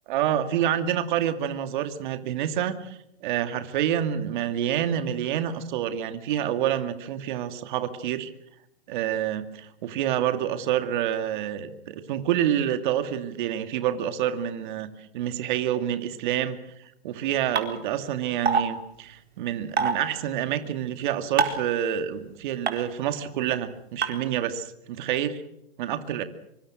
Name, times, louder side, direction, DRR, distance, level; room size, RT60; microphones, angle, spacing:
voice 1, 0.1-8.3 8.9-14.9 15.1-16.6 17.0-25.4 25.8-26.2, right 10 dB, 50° right, 9 dB, 2.3 m, -28 dB
sound 1, 17.6-17.7 18.5-18.6 19.8-19.9 21.4-21.6 22.7-22.8 24.0-24.1, right 5 dB, 80° right, 4.3 m, -21 dB
25.0 x 24.5 x 6.3 m, 0.80 s
hypercardioid pair, 140°, 32 cm